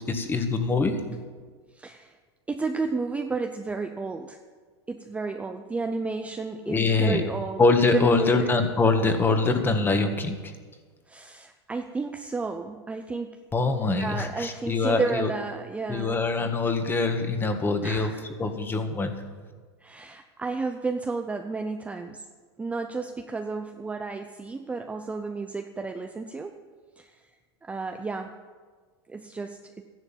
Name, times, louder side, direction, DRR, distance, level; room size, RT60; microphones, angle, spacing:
voice 1, 0.1-1.0 6.7-7.2 7.6-10.5 13.5-15.3 15.9-18.1 18.4-19.1, left 3 dB, 15° left, 6 dB, 1.5 m, -24 dB
voice 2, 1.7-2.1 2.5-4.4 4.9-7.6 7.9-8.5 11.1-13.4 14.0-16.5 17.8-18.3 19.8-22.3 22.6-26.6 27.0-27.2 27.6-28.3 29.1-29.8, right 4 dB, 10° right, 5 dB, 0.6 m, -32 dB
13.5 x 11.0 x 7.3 m, 1.5 s
supercardioid pair, 135°, 14 cm